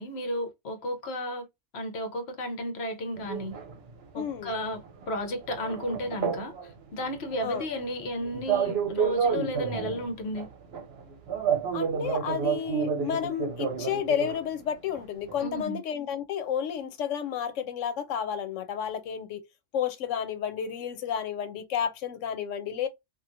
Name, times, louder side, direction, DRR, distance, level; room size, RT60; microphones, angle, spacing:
voice 1, 0.0-1.5 1.7-3.5 4.1-10.5 15.4-15.8, equal, 60° left, 1.1 m, -33 dB
sound 1, 3.2-4.7 5.0-6.7 7.0-14.4 14.9-15.0 15.3-15.6, right 7 dB, 60° right, 0.8 m, -30 dB
voice 2, 4.1-4.5 7.4-7.7 11.7-19.4 19.7-22.9, left 8 dB, 90° left, 1.0 m, -31 dB
2.9 x 2.4 x 2.5 m
omnidirectional pair, 1.2 m